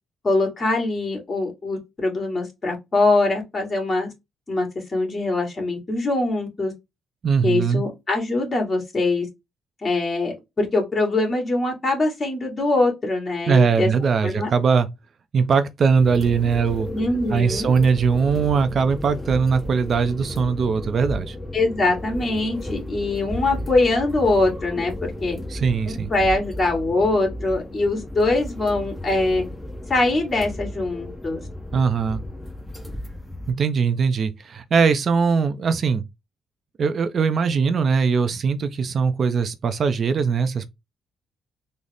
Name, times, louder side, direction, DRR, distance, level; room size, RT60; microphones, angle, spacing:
voice 1, 0.2-4.1 4.5-6.7 7.4-9.3 9.8-13.9 14.2-14.5 16.9-17.7 21.5-25.4 25.9-29.4 29.9-31.4, left 2 dB, 35° left, 1.9 m, -23 dB
voice 2, 7.2-7.8 13.5-14.9 15.3-16.9 17.3-21.4 25.5-26.1 31.7-32.2 33.5-36.0 36.8-40.7, right 5 dB, 50° right, 0.4 m, -20 dB
sound 1, 15.9-33.5, left 1 dB, 10° left, 0.8 m, -34 dB
3.8 x 2.0 x 3.4 m
cardioid pair, 90°, 0 cm